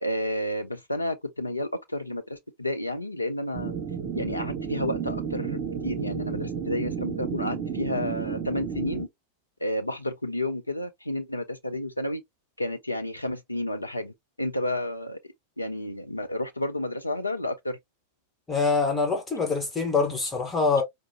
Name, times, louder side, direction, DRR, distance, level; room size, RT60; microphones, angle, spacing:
voice 1, 0.0-3.7 4.1-9.1 9.6-12.2 12.6-15.2 15.6-17.8, left 1 dB, 85° left, 0.4 m, -31 dB
sound 1, 3.5-9.1, right 7 dB, 40° right, 1.3 m, -32 dB
voice 2, 18.5-20.8, left 4 dB, 15° left, 1.2 m, -24 dB
4.7 x 2.1 x 2.9 m
figure-of-eight pair, 90°, 0 cm